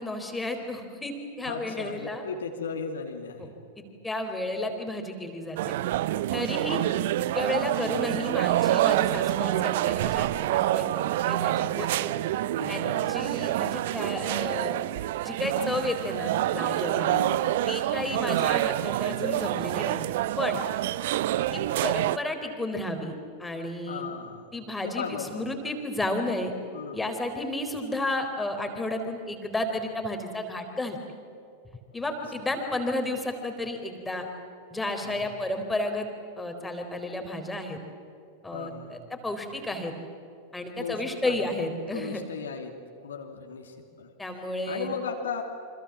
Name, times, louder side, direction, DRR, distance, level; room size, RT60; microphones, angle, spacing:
voice 1, 0.0-2.2 3.4-3.5 3.8-5.7 6.3-6.8 7.3-10.9 11.3-12.1 12.7-14.8 15.2-17.1 17.7-20.1 20.4-20.6 21.5-23.1 23.4-24.0 24.5-26.5 26.9-31.0 31.9-34.3 34.7-36.1 36.4-37.8 38.4-39.9 40.5-42.2 44.2-44.9, left 1 dB, 10° left, 5 dB, 4.1 m, -32 dB
voice 2, 1.4-3.5 6.3-6.6 12.6-13.4 17.0-17.5 18.0-18.4 23.8-24.5 24.8-25.4 26.7-27.1 32.0-32.1 35.0-35.3 38.5-39.0 40.8-41.5 41.9-42.8 43.0-45.4, left 6 dB, 65° left, 3 dB, 2.8 m, -37 dB
sound 1, 5.6-22.2, right 14 dB, 55° right, 0.7 m, -27 dB
28.5 x 26.0 x 7.4 m, 2.5 s
figure-of-eight pair, 90°, 0 cm